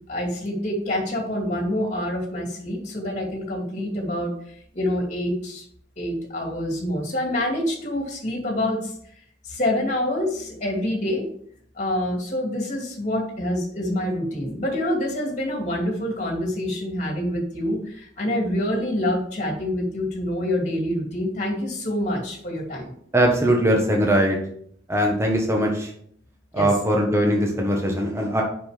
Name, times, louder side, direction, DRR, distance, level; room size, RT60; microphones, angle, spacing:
voice 1, 0.1-4.3 4.7-5.6 6.0-8.9 9.4-11.3 11.8-22.9 26.5-26.7, left 1 dB, 40° left, 0 dB, 2.6 m, -26 dB
voice 2, 23.1-24.4 24.9-25.9 26.5-28.4, right 1 dB, 15° right, 0 dB, 1.4 m, -20 dB
7.0 x 6.0 x 5.2 m, 0.65 s
head